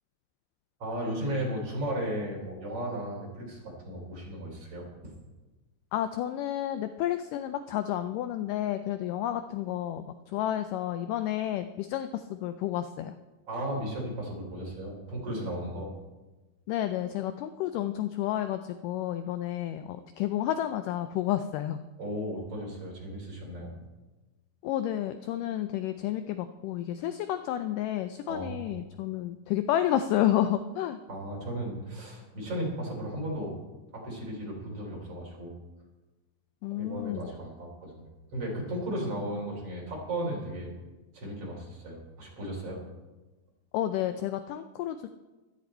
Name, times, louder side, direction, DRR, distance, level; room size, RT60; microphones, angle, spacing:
voice 1, 0.8-5.1 13.5-15.9 22.0-23.7 28.3-28.7 31.1-33.5 33.9-35.6 36.7-40.7 41.1-42.8, right 1 dB, 40° right, -2 dB, 4.6 m, -35 dB
voice 2, 5.9-13.2 16.7-21.8 24.6-31.0 36.6-37.3 43.7-45.1, left 12 dB, 80° left, 10 dB, 1.9 m, -31 dB
15.0 x 13.0 x 4.4 m, 1.2 s
omnidirectional pair, 4.3 m